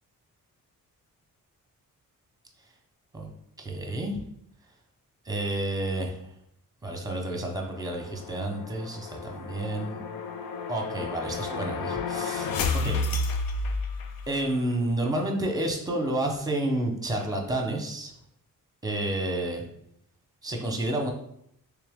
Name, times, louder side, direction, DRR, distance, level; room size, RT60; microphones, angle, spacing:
voice 1, 3.6-4.2 5.3-6.2 6.8-10.0 10.7-12.5 12.8-13.0 14.3-18.1 18.8-19.6 20.4-21.1, right 1 dB, 10° right, 2 dB, 0.8 m, -30 dB
sound 1, 7.7-14.5, left 3 dB, 90° left, 0.5 m, -32 dB
3.4 x 2.8 x 3.5 m, 0.73 s
cardioid pair, 85°, 34 cm